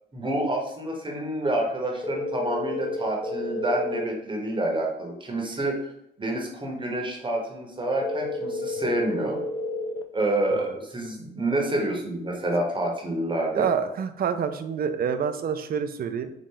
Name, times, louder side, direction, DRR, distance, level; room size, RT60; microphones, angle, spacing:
voice 1, 0.1-5.8 6.2-9.4 10.1-13.7, right 1 dB, 25° right, 0 dB, 1.2 m, -28 dB
sound 1, 2.0-4.0 8.0-10.0, left 2 dB, 20° left, 0.4 m, -31 dB
voice 2, 13.5-16.3, right 7 dB, 50° right, 9 dB, 0.5 m, -27 dB
4.2 x 2.4 x 3.8 m, 0.78 s
cardioid pair, 90°, 20 cm